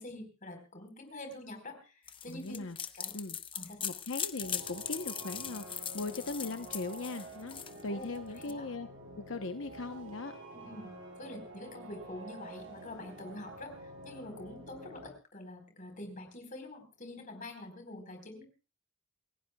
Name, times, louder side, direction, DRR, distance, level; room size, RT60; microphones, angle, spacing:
voice 1, 0.0-2.6 2.9-3.2 3.5-3.9 7.9-8.1 8.4-8.7 10.5-10.9 11.2-18.5, left 1 dB, 40° left, 5 dB, 4.3 m, -46 dB
sound 1, 2.1-8.5, left 8 dB, 25° left, 0.8 m, -40 dB
voice 2, 2.3-2.8 3.1-3.4 3.8-8.9 9.1-10.4, left 3 dB, 80° left, 7 dB, 0.9 m, -39 dB
sound 2, 4.4-15.1, right 1 dB, 75° right, 5.4 m, -49 dB
28.5 x 15.5 x 2.3 m, 0.31 s
head